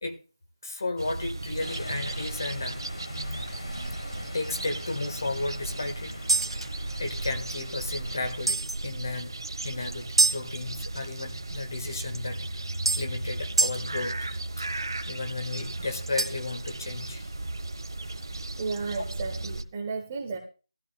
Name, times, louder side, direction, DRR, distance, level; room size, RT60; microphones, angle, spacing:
voice 1, 0.6-2.8 3.2-3.4 4.3-6.1 7.0-12.6 13.0-14.2 14.6-17.3, left 2 dB, 35° left, 6 dB, 1.5 m, -34 dB
sound 1, 1.0-19.6, right 2 dB, 50° right, 1.3 m, -36 dB
sound 2, 1.6-8.4, left 1 dB, 65° left, 1.9 m, -41 dB
sound 3, 2.5-2.6 3.1-3.2 3.5-3.6 4.1-4.2 6.3-7.6 8.5-8.8 10.2-10.4 12.1-12.2 12.9-13.1 13.6-13.8 16.2-16.5, right 3 dB, 85° right, 1.8 m, -26 dB
voice 2, 18.6-20.4, right 4 dB, 15° right, 2 dB, 0.9 m, -33 dB
17.0 x 13.5 x 2.3 m, 0.34 s
figure-of-eight pair, 175°, 3 cm